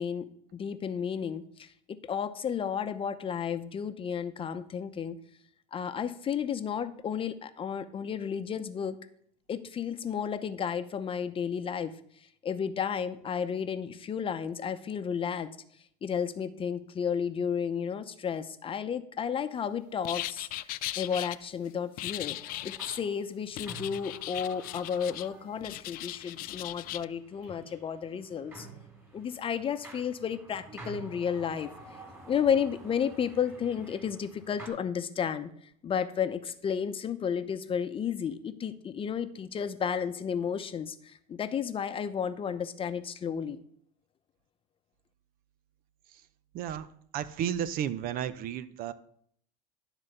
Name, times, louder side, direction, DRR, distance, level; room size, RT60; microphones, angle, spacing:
voice 1, 0.0-1.7 2.1-5.2 5.7-9.0 9.5-11.9 12.4-15.5 16.0-20.5 20.9-22.4 22.6-28.7 29.1-31.7 32.3-35.5 35.8-43.6, left 7 dB, 30° left, 10 dB, 0.8 m, -32 dB
sound 1, 20.0-21.4 22.0-23.0 23.6-25.3 25.6-27.1, left 17 dB, 55° left, 0.4 m, -38 dB
sound 2, 22.2-34.7, right 3 dB, 15° right, 3.7 m, -50 dB
voice 2, 46.5-46.9 47.1-48.9, right 9 dB, 55° right, 14 dB, 0.7 m, -33 dB
12.0 x 4.0 x 6.7 m, 0.63 s
supercardioid pair, 105°, 17 cm